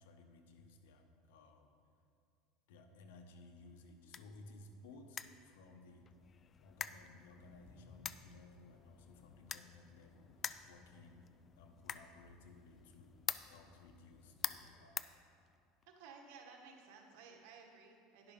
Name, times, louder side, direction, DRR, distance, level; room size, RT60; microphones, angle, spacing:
voice 1, 0.0-1.7 2.7-6.1 6.6-11.3 11.6-13.2 13.5-15.1, left 2 dB, 85° left, 5 dB, 1.0 m, -59 dB
sound 1, 3.6-15.8, left 7 dB, 30° left, 0.3 m, -48 dB
voice 2, 15.9-18.3, right 5 dB, 75° right, 2 dB, 1.4 m, -56 dB
10.5 x 5.9 x 5.3 m, 2.3 s
supercardioid pair, 125°, 0 cm